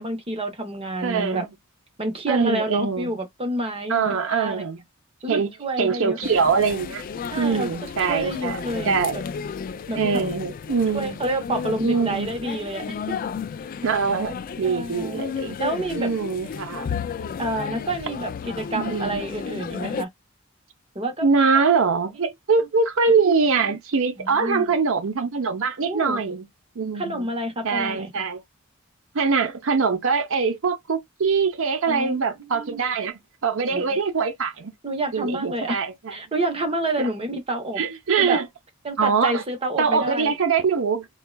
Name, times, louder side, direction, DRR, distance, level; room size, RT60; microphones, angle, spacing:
voice 1, 0.0-1.4 2.0-4.6 5.2-6.2 7.3-9.2 9.9-10.2 10.9-13.0 14.6-15.2 15.6-16.1 17.4-20.1 20.9-21.3 24.2-24.7 25.8-26.3 26.9-28.2 31.9-32.8 33.6-34.0 34.8-35.8 36.1-37.8 38.2-38.4 38.8-40.3, right 2 dB, 30° right, 1.0 m, -29 dB
voice 2, 1.0-1.5 2.3-3.2 3.9-4.8 5.3-5.5 5.8-7.0 7.4-9.2 10.0-11.2 11.8-12.3 13.8-15.6 15.9-16.9 18.7-19.2 21.2-26.5 26.8-27.3 27.6-28.4 29.1-34.7 35.1-36.1 37.0-37.1 37.8-38.5 39.0-39.4 39.8-41.1, right 5 dB, 70° right, 0.7 m, -23 dB
sound 1, 6.2-20.0, left 6 dB, 40° left, 0.3 m, -33 dB
3.7 x 2.3 x 2.2 m
head